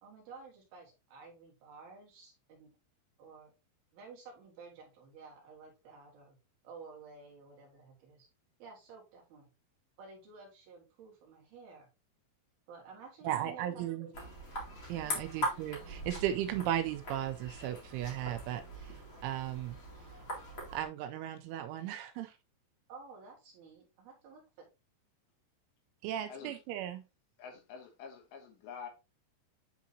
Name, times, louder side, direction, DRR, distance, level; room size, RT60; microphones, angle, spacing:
voice 1, 0.0-2.7 3.2-3.5 3.9-6.4 6.6-8.3 8.6-9.5 10.0-11.9 12.7-14.2 15.0-15.3 22.9-24.4, right 4 dB, 60° right, 3.0 m, -52 dB
voice 2, 13.2-14.1 14.9-19.8 20.7-22.3 26.0-27.0, right 11 dB, 85° right, 3.0 m, -36 dB
sound 1, 14.1-20.8, equal, 40° left, 2.1 m, -41 dB
voice 3, 26.3-26.6 27.4-28.9, left 6 dB, 75° left, 2.9 m, -47 dB
9.6 x 3.7 x 2.6 m
omnidirectional pair, 5.7 m